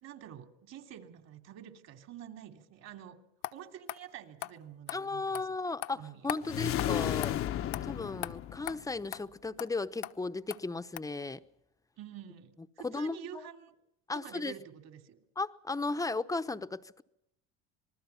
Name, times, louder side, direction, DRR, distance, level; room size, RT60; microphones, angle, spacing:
voice 1, 0.0-3.2 3.5-5.5 5.9-6.5 12.0-13.8 14.2-15.2, right 10 dB, 50° right, 3.0 m, -48 dB
sound 1, 3.4-3.5 3.9-4.0 4.4-4.5 4.9-5.0 5.3-5.4 5.8-5.9 6.3-6.4 6.8-6.9 7.2-7.3 7.7-7.8 8.2-8.3 8.7-8.8 9.1-9.2 9.6-9.7 10.0-10.1 10.5-10.6 11.0-11.1, left 16 dB, 65° left, 1.2 m, -37 dB
voice 2, 4.9-7.4 7.8-11.4 12.8-13.4 14.1-14.5 15.4-17.0, left 3 dB, 10° left, 0.9 m, -35 dB
sound 2, 6.4-9.0, left 12 dB, 45° left, 0.9 m, -33 dB
27.0 x 20.0 x 5.8 m
supercardioid pair, 105°, 32 cm